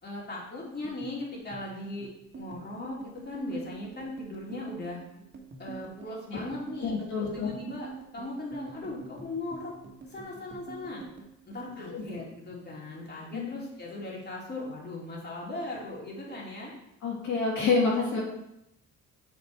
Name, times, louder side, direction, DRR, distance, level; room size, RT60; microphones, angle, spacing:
voice 1, 0.0-5.0 5.6-9.7 10.0-11.0 11.5-16.7, left 2 dB, 35° left, -4 dB, 2.9 m, -38 dB
sound 1, 0.7-13.3 13.5-14.6 14.8-15.2 15.5-16.2, right 5 dB, 40° right, 1.5 m, -47 dB
voice 2, 6.8-7.5 11.8-12.0 13.3-13.5 17.0-18.2, left 4 dB, 75° left, -3 dB, 1.8 m, -27 dB
6.8 x 5.3 x 4.5 m, 0.83 s
cardioid pair, 90°, 30 cm